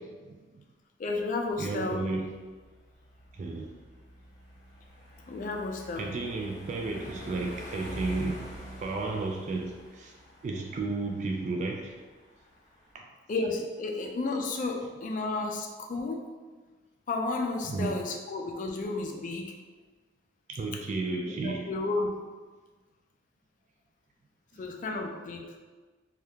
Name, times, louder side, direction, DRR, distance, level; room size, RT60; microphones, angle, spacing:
voice 1, 0.2-0.6 1.6-2.3 3.3-3.7 6.0-8.5 8.8-10.1 10.4-11.9 12.9-13.1 17.7-17.9 20.5-21.7 24.5-24.6, right 3 dB, 40° right, 1 dB, 0.3 m, -33 dB
voice 2, 1.0-2.0 5.3-6.1 13.3-16.3 17.1-19.6 21.4-22.2 24.6-25.6, left 3 dB, 45° left, 2 dB, 0.3 m, -32 dB
sound 1, 1.2-12.9, equal, 30° left, 1.0 m, -46 dB
2.8 x 2.3 x 3.4 m, 1.3 s
head